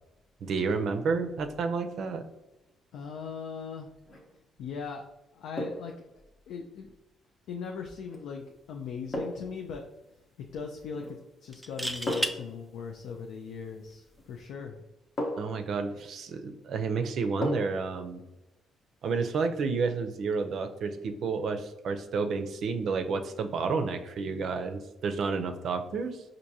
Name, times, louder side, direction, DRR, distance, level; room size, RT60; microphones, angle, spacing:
voice 1, 0.4-2.2 15.4-18.2 19.0-26.2, right 4 dB, 65° right, 7 dB, 0.4 m, -30 dB
voice 2, 2.9-3.9 4.6-5.1 5.3-6.1 6.5-6.9 7.5-9.8 10.4-14.8, left 6 dB, 85° left, 2 dB, 0.4 m, -39 dB
sound 1, 4.0-4.3 5.6-6.0 8.1-8.3 9.1-9.6 10.9-11.3 12.1-12.5 14.2-14.3 15.2-15.6 17.4-17.9 18.2-18.3, left 1 dB, 45° left, 0.9 m, -35 dB
sound 2, 8.7-8.9 9.3-9.4 11.5-12.4 14.2-14.4, right 1 dB, 5° right, 0.4 m, -32 dB
4.6 x 2.5 x 2.7 m, 0.98 s
cardioid pair, 90°, 0 cm